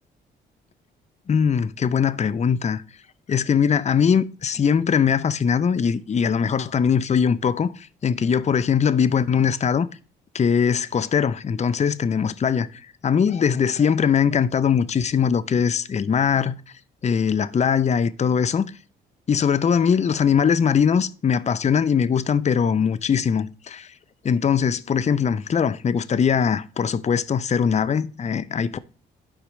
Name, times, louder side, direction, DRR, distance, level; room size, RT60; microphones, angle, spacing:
voice 1, 1.3-2.8 3.3-9.9 10.3-12.7 13.0-16.6 17.0-18.7 19.3-23.9 24.2-28.8, left 7 dB, 35° left, 0.6 m, -21 dB
12.0 x 4.8 x 3.1 m
supercardioid pair, 60°, 21 cm